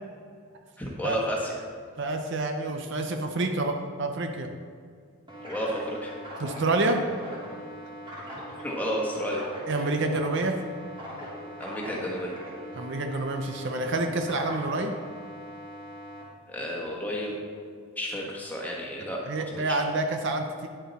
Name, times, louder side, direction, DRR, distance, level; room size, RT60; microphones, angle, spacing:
voice 1, 0.8-1.5 5.4-6.2 8.3-8.4 8.6-9.4 11.6-12.3 16.5-17.4 18.0-19.2 19.7-19.8, equal, 10° left, -3 dB, 1.5 m, -31 dB
voice 2, 2.0-4.5 6.4-7.0 9.7-10.6 12.7-15.0 19.2-20.7, right 2 dB, 55° right, 5 dB, 0.6 m, -28 dB
sound 1, 5.3-16.2, equal, 20° right, 2.7 m, -41 dB
10.0 x 7.6 x 4.2 m, 2.2 s
head